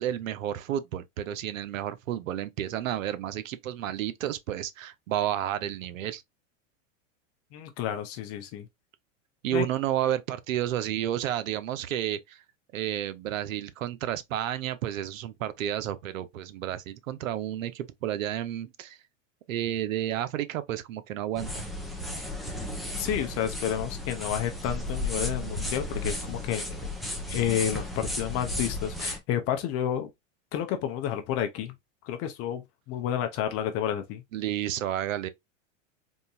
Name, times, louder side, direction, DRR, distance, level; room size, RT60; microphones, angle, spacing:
voice 1, 0.0-6.2 9.4-12.4 12.7-19.0 19.5-21.7 34.3-35.3, right 11 dB, 85° right, 0.7 m, -31 dB
voice 2, 7.5-8.7 9.5-9.7 23.0-26.7 27.3-30.1 30.5-31.7 32.0-32.6 32.9-34.2, left 10 dB, 40° left, 0.7 m, -30 dB
sound 1, 21.4-29.2, left 1 dB, ahead, 0.6 m, -34 dB
3.6 x 2.6 x 2.6 m
hypercardioid pair, 125°, 38 cm